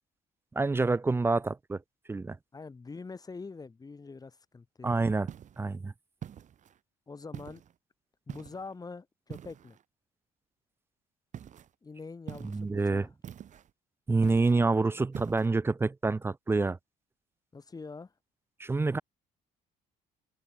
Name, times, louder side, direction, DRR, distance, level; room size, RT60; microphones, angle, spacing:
voice 1, 0.6-1.8 2.1-2.4 4.8-5.3 5.6-5.9 12.4-13.1 14.1-16.8 18.6-19.0, right 3 dB, 15° right, 0.4 m, -27 dB
voice 2, 2.5-5.0 7.1-7.6 8.3-9.8 11.8-13.1 17.5-18.1, left 4 dB, 20° left, 2.3 m, -44 dB
sound 1, 5.3-5.7 6.2-6.8 7.3-7.7 8.3-8.7 9.3-9.8 11.3-11.7 12.3-12.7 13.2-13.7 14.2-14.6 15.1-15.5, right 9 dB, 45° right, 1.4 m, -44 dB
cardioid pair, 110°, 17 cm